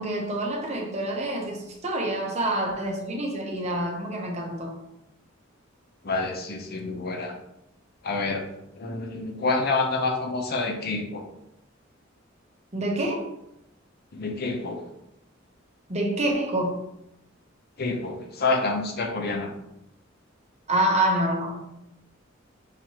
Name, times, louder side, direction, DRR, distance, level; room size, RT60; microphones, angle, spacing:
voice 1, 0.0-4.8 12.7-13.3 15.9-16.8 20.7-21.6, right 1 dB, 35° right, 0.8 m, -27 dB
voice 2, 6.0-7.3 8.0-8.4 8.8-11.2 14.1-14.8 17.8-19.5, left 3 dB, 50° left, 0.7 m, -28 dB
5.7 x 3.0 x 2.9 m
head